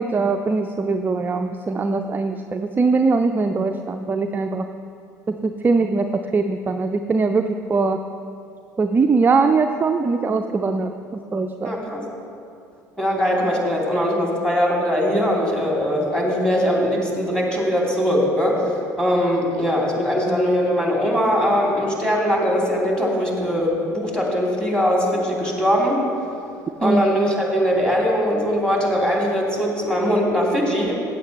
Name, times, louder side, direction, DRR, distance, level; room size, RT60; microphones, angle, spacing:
voice 1, 0.0-4.7 5.3-6.1 6.3-8.0 8.8-11.8 26.8-27.0, right 4 dB, 20° right, 6 dB, 0.4 m, -21 dB
voice 2, 11.6-12.0 13.0-18.7 19.0-26.0 26.8-30.9, equal, 5° left, -2 dB, 2.8 m, -21 dB
15.5 x 8.8 x 3.1 m, 2.5 s
figure-of-eight pair, 60°, 10 cm